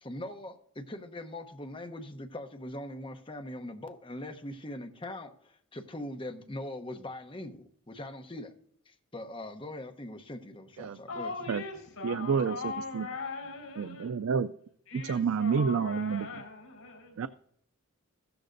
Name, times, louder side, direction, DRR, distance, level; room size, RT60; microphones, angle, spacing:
voice 1, 0.0-8.5 8.9-11.3, left 1 dB, 25° left, 7 dB, 0.9 m, -41 dB
voice 2, 11.1-14.2 14.9-17.2, left 4 dB, 80° left, 2 dB, 4.7 m, -40 dB
voice 3, 12.0-13.1 13.8-14.5 14.9-16.3 17.2-17.3, right 6 dB, 70° right, 14 dB, 0.4 m, -29 dB
15.5 x 13.0 x 2.6 m, 0.66 s
head